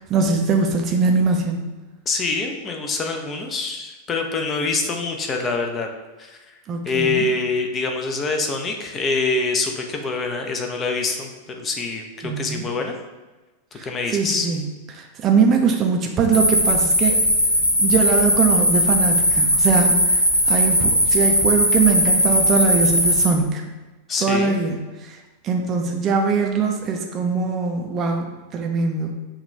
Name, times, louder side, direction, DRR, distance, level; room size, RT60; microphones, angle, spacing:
voice 1, 0.1-1.6 6.7-7.3 12.2-12.6 13.8-13.9 14.1-14.6 14.9-17.2 17.8-20.2 20.5-23.6 24.2-25.2 25.4-29.1, right 4 dB, 30° right, 2 dB, 0.5 m, -21 dB
voice 2, 2.1-5.9 6.2-6.4 6.8-13.0 13.7-14.5 24.1-24.5, left 3 dB, 25° left, 3 dB, 0.6 m, -25 dB
sound 1, 16.3-23.3, equal, 90° left, 0.7 m, -18 dB
5.8 x 2.4 x 3.2 m, 1.2 s
figure-of-eight pair, 90°, 0 cm